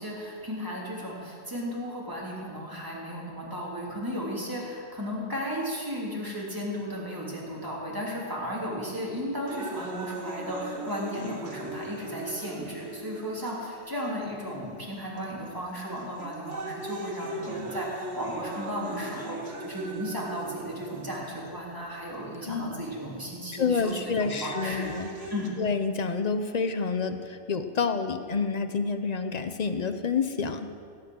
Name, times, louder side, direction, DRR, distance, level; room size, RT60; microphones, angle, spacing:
voice 1, 0.0-24.9 25.3-25.6, equal, 15° right, -5 dB, 2.9 m, -35 dB
sound 1, 9.5-13.5 14.2-14.3 15.2-15.5 16.0-21.5 22.5-22.6 24.0-25.5, right 2 dB, 85° right, 1.8 m, -38 dB
voice 2, 22.4-22.8 23.5-25.1 25.6-30.7, left 5 dB, 40° left, 9 dB, 0.7 m, -28 dB
16.5 x 8.8 x 6.2 m, 2.3 s
omnidirectional pair, 1.2 m